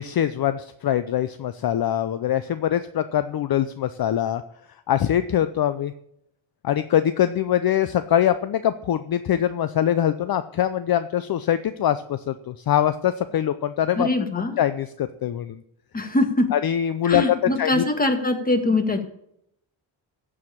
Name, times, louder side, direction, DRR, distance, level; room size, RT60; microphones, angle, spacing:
voice 1, 0.0-4.4 4.9-5.9 6.6-14.1 14.6-15.6 16.5-17.3 17.6-17.8, left 10 dB, 55° left, 11 dB, 0.6 m, -23 dB
voice 2, 14.0-14.6 15.9-16.5 17.0-19.0, left 2 dB, 20° left, 6 dB, 1.8 m, -22 dB
14.5 x 5.0 x 8.7 m, 0.75 s
wide cardioid pair, 125°, 45 cm